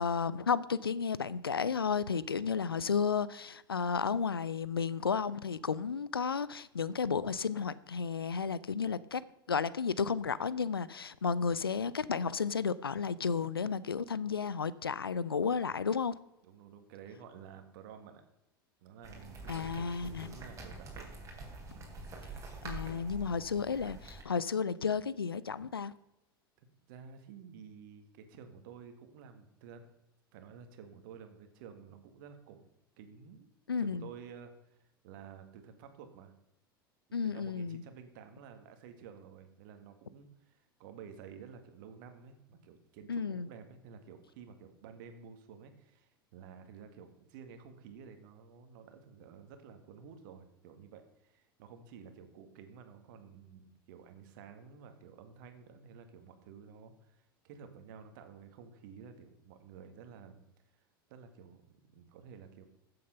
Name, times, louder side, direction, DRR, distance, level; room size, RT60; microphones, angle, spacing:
voice 1, 0.0-9.2 9.5-16.1 19.5-20.3 22.6-25.9 33.7-34.0 37.1-37.8 43.1-43.5, left 6 dB, 85° left, 0.5 m, -33 dB
voice 2, 16.4-18.2 18.8-21.2 21.7-21.9 26.6-29.8 30.3-32.7 33.0-33.5 33.8-36.3 37.2-60.4 61.1-62.7, right 7 dB, 60° right, 1.9 m, -52 dB
sound 1, 19.0-24.2, right 2 dB, 25° right, 3.6 m, -46 dB
14.5 x 7.7 x 5.7 m
figure-of-eight pair, 80°, 12 cm